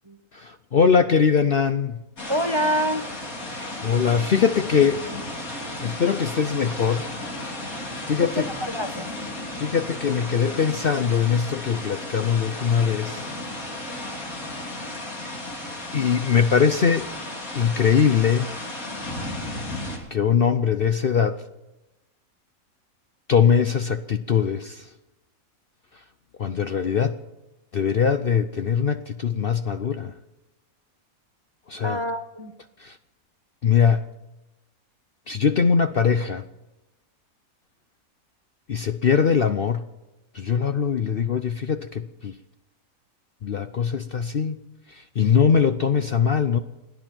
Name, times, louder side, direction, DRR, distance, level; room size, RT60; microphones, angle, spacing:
voice 1, 0.3-2.0 3.5-5.0 5.8-7.0 8.1-8.4 9.6-13.3 15.9-17.1 17.5-18.5 20.1-21.4 23.3-24.9 26.4-27.2 27.7-30.1 31.7-32.0 32.8-33.0 33.6-34.0 35.3-36.4 38.7-39.9 40.3-42.4 43.4-44.6 44.9-46.6, left 6 dB, 55° left, 9 dB, 0.7 m, -21 dB
sound 1, 2.2-20.0, left 1 dB, 75° left, 3.6 m, -34 dB
voice 2, 2.3-3.1 8.2-9.1 31.8-32.5, equal, 25° right, 7 dB, 0.8 m, -26 dB
30.0 x 10.5 x 4.5 m, 1.0 s
omnidirectional pair, 1.5 m